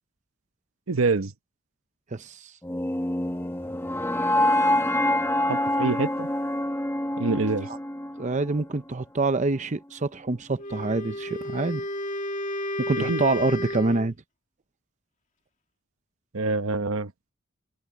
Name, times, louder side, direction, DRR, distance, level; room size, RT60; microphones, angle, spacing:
voice 1, 0.9-1.3 5.4-6.3 7.2-7.7 13.0-13.2 16.3-17.1, right 3 dB, 85° right, 1.0 m, -26 dB
voice 2, 2.1-2.5 7.7-7.8 8.2-11.8 12.8-14.1, right 3 dB, 35° right, 0.7 m, -26 dB
sound 1, 2.6-8.7, left 1 dB, 10° left, 1.3 m, -26 dB
Wind instrument woodwind instrument, 10.6-14.1, left 1 dB, 40° left, 2.3 m, -32 dB
head